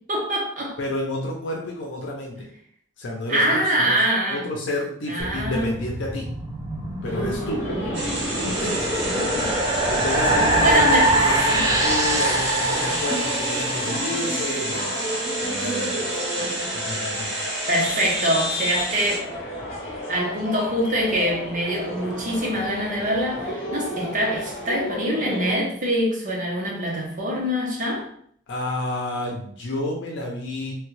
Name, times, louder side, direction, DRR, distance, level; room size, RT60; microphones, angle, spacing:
voice 1, 0.1-0.7 3.3-4.4 5.1-5.7 7.7-8.0 9.0-9.5 10.6-11.1 11.5-11.6 16.4-16.8 17.7-19.2 20.1-28.0, equal, 45° right, -2 dB, 0.9 m, -24 dB
voice 2, 0.8-2.5 3.0-4.0 4.3-6.3 7.0-7.7 8.4-9.2 9.9-14.9 15.4-16.1 16.7-17.3 28.5-30.7, left 1 dB, 65° left, -1 dB, 0.6 m, -30 dB
sound 1, 5.2-14.6, right 1 dB, 20° right, 0.5 m, -24 dB
sound 2, 7.0-25.5, equal, 40° left, 1.1 m, -33 dB
sound 3, 7.9-19.2, right 1 dB, 75° right, 1.1 m, -29 dB
3.2 x 2.3 x 3.1 m, 0.64 s
head